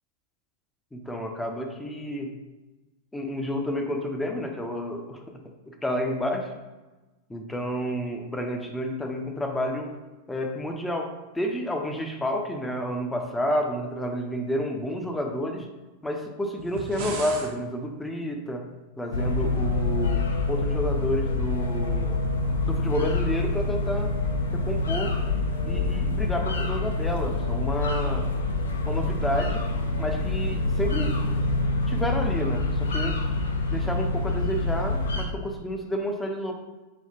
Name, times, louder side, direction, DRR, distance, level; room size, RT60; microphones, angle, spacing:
voice 1, 0.9-2.3 3.1-5.4 5.7-6.5 7.3-9.9 10.3-11.1 11.3-15.7 16.0-18.6 19.0-22.2 22.6-24.1 24.6-25.1 25.6-28.3 28.8-29.6 30.0-31.1 31.9-33.2 33.7-36.5, equal, 10° left, 2 dB, 0.5 m, -30 dB
sound 1, 16.6-17.5, right 3 dB, 50° right, 0.5 m, -35 dB
sound 2, 19.1-35.2, left 2 dB, 70° left, 0.5 m, -26 dB
5.0 x 2.3 x 2.8 m, 1.2 s
figure-of-eight pair, 90°, 0 cm